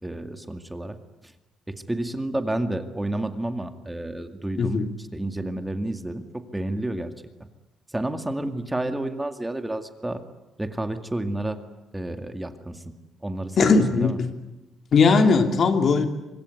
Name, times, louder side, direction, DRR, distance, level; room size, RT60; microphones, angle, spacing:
voice 1, 0.0-1.0 1.2-1.3 1.7-7.1 7.9-10.2 10.6-11.6 11.9-12.9 13.2-14.2, right 1 dB, 10° right, 7 dB, 2.1 m, -30 dB
voice 2, 4.6-4.9 13.6-14.3 14.9-16.0, left 4 dB, 55° left, 6 dB, 2.8 m, -19 dB
24.5 x 22.0 x 9.7 m, 1.0 s
cardioid pair, 90°, 0 cm